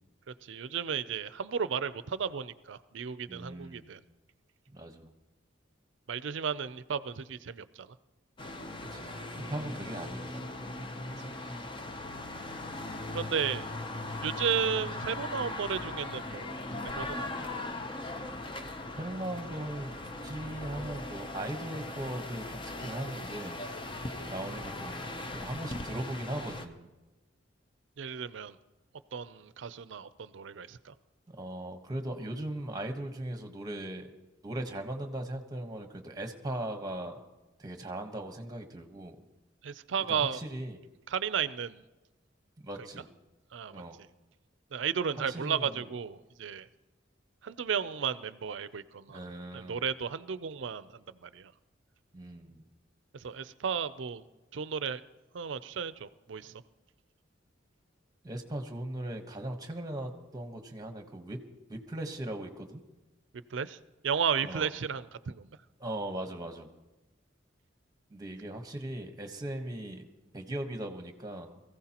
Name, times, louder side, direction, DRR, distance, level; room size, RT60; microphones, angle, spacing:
voice 1, 0.4-4.0 6.1-7.9 11.2-11.3 13.1-13.7 14.2-17.5 28.0-28.6 29.1-30.9 39.6-40.4 41.1-41.8 43.5-43.8 44.7-46.7 47.4-49.2 49.5-51.5 53.1-54.2 54.5-55.0 55.3-56.6 63.5-65.5, right 7 dB, 70° right, 15 dB, 0.5 m, -34 dB
voice 2, 3.3-3.9 4.7-5.1 8.9-9.1 9.5-10.3 18.9-19.9 20.2-23.7 24.2-26.9 31.3-34.1 34.4-37.2 37.6-39.2 40.1-40.8 42.6-43.1 43.7-44.0 45.3-45.9 49.1-49.8 52.1-52.7 58.2-61.4 61.7-62.8 64.4-64.7 65.8-66.7 68.1-70.1 70.3-71.6, right 1 dB, 20° right, 6 dB, 1.1 m, -39 dB
sound 1, 8.4-26.7, left 2 dB, 25° left, 0.7 m, -39 dB
22.5 x 15.0 x 2.9 m, 1.1 s
head